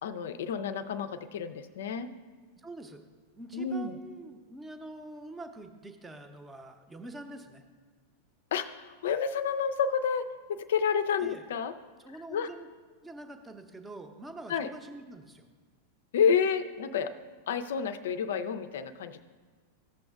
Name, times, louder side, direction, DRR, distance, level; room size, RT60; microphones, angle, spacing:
voice 1, 0.0-2.1 3.5-3.9 8.5-11.7 12.3-12.5 14.5-14.7 16.1-17.1 17.5-19.2, left 7 dB, 60° left, 10 dB, 0.4 m, -30 dB
voice 2, 2.6-3.0 3.3-7.6 11.2-11.5 12.0-12.7 13.0-15.4, right 2 dB, 10° right, 6 dB, 0.7 m, -45 dB
14.0 x 6.9 x 2.3 m, 1.5 s
figure-of-eight pair, 90°, 0 cm